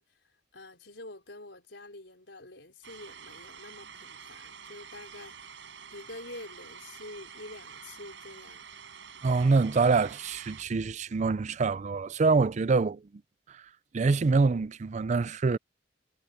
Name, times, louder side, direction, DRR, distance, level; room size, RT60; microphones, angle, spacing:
voice 1, 0.0-8.7, left 2 dB, 80° left, 4.5 m, -47 dB
sound 1, 2.8-10.6, right 6 dB, 85° right, 5.3 m, -48 dB
voice 2, 9.2-13.0 13.5-13.6 13.9-15.6, right 4 dB, 40° right, 0.4 m, -25 dB
head